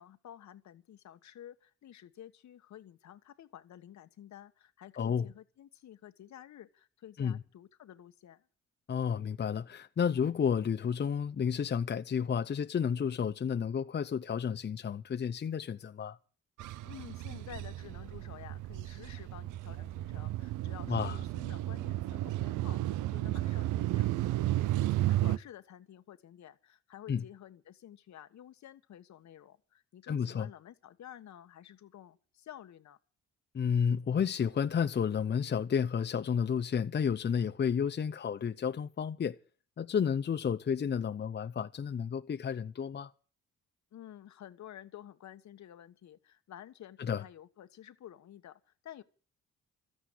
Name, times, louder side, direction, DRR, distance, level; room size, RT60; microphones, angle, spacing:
voice 1, 0.0-8.4 16.8-33.0 43.9-49.0, left 11 dB, 65° left, 1.5 m, -51 dB
voice 2, 8.9-16.2 20.9-21.1 27.1-27.2 30.1-30.5 33.5-39.3 39.8-43.1 47.0-47.2, left 7 dB, 35° left, 0.7 m, -31 dB
sound 1, 16.6-25.4, right 15 dB, 90° right, 0.7 m, -33 dB
13.5 x 9.3 x 9.6 m
cardioid pair, 90°, 30 cm